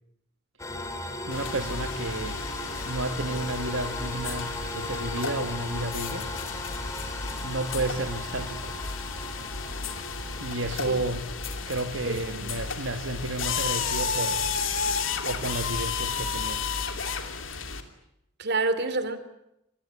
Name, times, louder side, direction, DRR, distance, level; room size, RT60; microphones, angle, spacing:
sound 1, 0.6-17.7, left 2 dB, 15° left, 3.8 m, -39 dB
sound 2, 1.3-17.8, left 5 dB, 75° left, 2.8 m, -33 dB
voice 1, 1.3-2.4 2.8-6.3 7.4-8.7 10.4-11.2 11.7-14.4 15.2-16.6, right 2 dB, 70° right, 1.7 m, -32 dB
voice 2, 12.1-12.5 18.4-19.2, right 3 dB, 55° right, 2.8 m, -28 dB
27.0 x 20.0 x 9.8 m
head